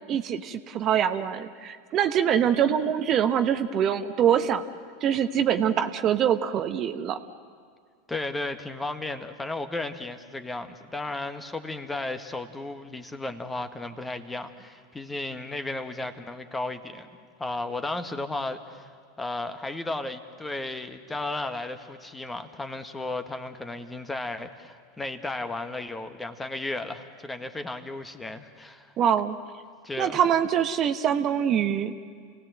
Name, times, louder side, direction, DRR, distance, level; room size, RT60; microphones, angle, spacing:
voice 1, 0.1-4.6 5.0-7.2 29.0-29.4 30.0-31.9, right 9 dB, 40° right, 9 dB, 1.0 m, -24 dB
voice 2, 8.1-17.1 17.4-18.9 19.2-28.9 29.8-30.2, left 2 dB, 10° left, 8 dB, 1.5 m, -34 dB
29.0 x 18.0 x 7.8 m, 2.1 s
hypercardioid pair, 90°, 0 cm